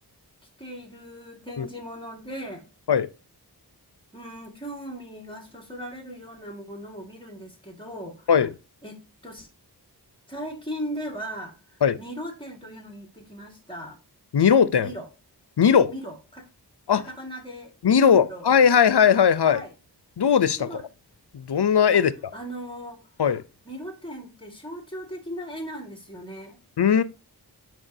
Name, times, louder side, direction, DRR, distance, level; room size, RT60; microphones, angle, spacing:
voice 1, 0.6-2.7 4.1-8.3 8.8-9.5 10.3-14.0 14.8-15.1 15.9-16.5 16.9-18.5 19.4-19.7 20.6-20.8 21.9-22.0 22.3-23.0 23.6-26.6, equal, 10° left, 1.9 m, -38 dB
voice 2, 14.3-14.9 15.6-15.9 16.9-17.0 17.8-19.6 20.2-20.7 21.3-22.1 23.2-23.4 26.8-27.0, left 7 dB, 75° left, 0.6 m, -18 dB
9.9 x 4.7 x 2.7 m
wide cardioid pair, 40°, 41 cm